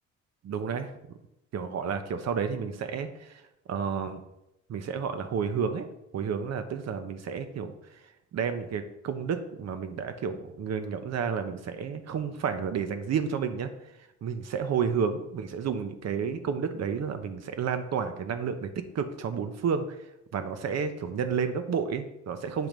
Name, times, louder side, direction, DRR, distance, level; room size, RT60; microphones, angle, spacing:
voice 1, 0.4-1.2 1.5-3.4 3.7-4.2 4.7-5.9 6.1-7.7 8.3-13.7 14.2-18.7 18.9-19.9 20.3-22.7, right 6 dB, 60° right, 9 dB, 0.8 m, -31 dB
7.9 x 3.0 x 5.1 m, 0.86 s
cardioid pair, 90°, 30 cm